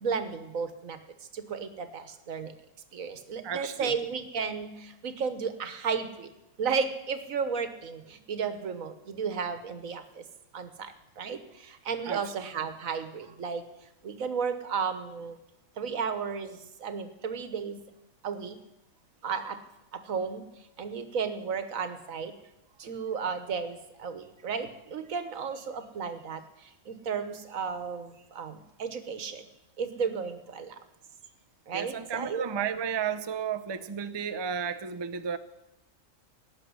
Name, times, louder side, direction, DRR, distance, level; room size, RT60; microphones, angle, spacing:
voice 1, 0.0-1.0 1.3-2.5 2.9-6.3 6.6-10.2 10.5-10.9 11.2-13.6 14.0-15.4 15.8-17.8 18.2-18.6 19.2-19.6 20.1-20.4 20.8-22.3 22.8-26.4 26.9-29.4 29.8-30.7 31.7-32.4, right 6 dB, 80° right, 10 dB, 1.5 m, -33 dB
voice 2, 3.4-4.0 12.1-12.3 31.7-35.4, right 7 dB, 30° right, 8 dB, 0.5 m, -33 dB
17.5 x 6.6 x 9.6 m, 0.94 s
omnidirectional pair, 1.4 m